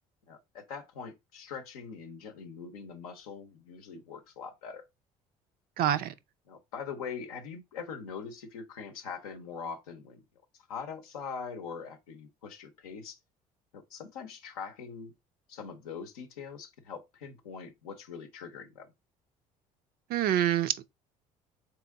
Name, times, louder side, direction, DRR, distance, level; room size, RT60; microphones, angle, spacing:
voice 1, 0.3-4.8 6.5-10.2 10.7-13.2 13.7-15.1 15.5-18.9, left 6 dB, 85° left, 0.6 m, -42 dB
voice 2, 5.8-6.1 20.1-20.8, right 11 dB, 55° right, 0.4 m, -26 dB
3.7 x 3.0 x 3.4 m
hypercardioid pair, 65°, 18 cm